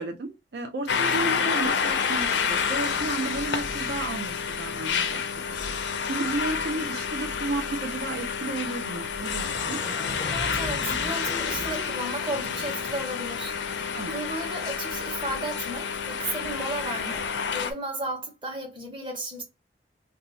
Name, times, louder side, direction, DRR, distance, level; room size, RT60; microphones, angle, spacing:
voice 1, 0.0-5.6 6.1-9.8 13.9-14.1, right 2 dB, 70° right, 0.5 m, -33 dB
sound 1, 0.9-17.7, left 6 dB, 85° left, 0.4 m, -29 dB
sound 2, 9.0-9.1 9.3-13.1, left 1 dB, 15° left, 0.4 m, -39 dB
voice 2, 10.3-19.4, right 1 dB, 30° right, 1.0 m, -34 dB
2.7 x 2.3 x 4.1 m
head